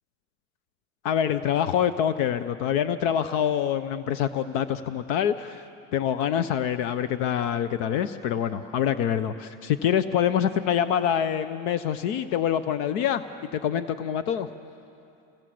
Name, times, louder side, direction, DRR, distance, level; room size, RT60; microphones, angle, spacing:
voice 1, 1.0-5.6 5.9-13.2 13.5-14.5, left 9 dB, 75° left, 12 dB, 1.0 m, -25 dB
27.5 x 19.5 x 7.8 m, 2.7 s
supercardioid pair, 120°, 38 cm